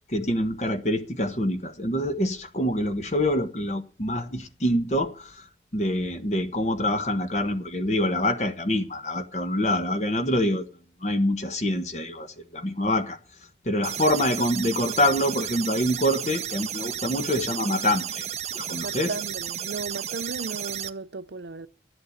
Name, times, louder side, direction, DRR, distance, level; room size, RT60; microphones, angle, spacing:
voice 1, 0.1-5.4 5.7-10.7 11.0-13.2 13.6-18.2 18.5-19.1, left 1 dB, 40° left, 1.3 m, -25 dB
sound 1, 13.8-20.9, right 10 dB, 40° right, 0.6 m, -33 dB
voice 2, 18.8-21.7, right 3 dB, 80° right, 0.6 m, -35 dB
11.5 x 7.9 x 8.3 m
head